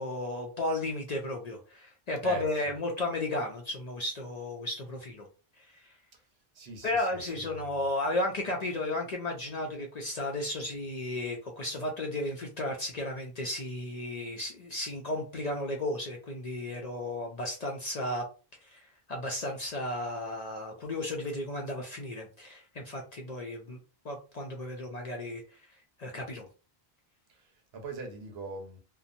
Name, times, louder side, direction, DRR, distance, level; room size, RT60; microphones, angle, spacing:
voice 1, 0.0-5.2 5.8-6.0 6.8-18.2 18.7-23.8 24.0-25.4 26.0-26.5, left 1 dB, 55° left, 0.5 m, -34 dB
voice 2, 2.2-2.7 6.1-6.2 6.5-7.7 27.3-28.8, right 3 dB, 75° right, 1.0 m, -42 dB
2.8 x 2.1 x 2.5 m
omnidirectional pair, 1.1 m